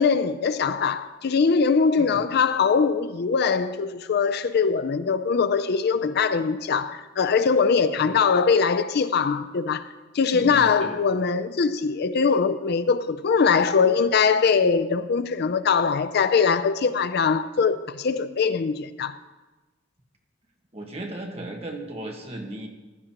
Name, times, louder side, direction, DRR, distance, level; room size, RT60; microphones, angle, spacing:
voice 1, 0.0-9.9 10.1-19.1, left 5 dB, 55° left, 0.4 m, -22 dB
voice 2, 10.3-11.0 20.7-22.7, right 1 dB, 35° right, 1.5 m, -36 dB
15.5 x 11.0 x 2.9 m
head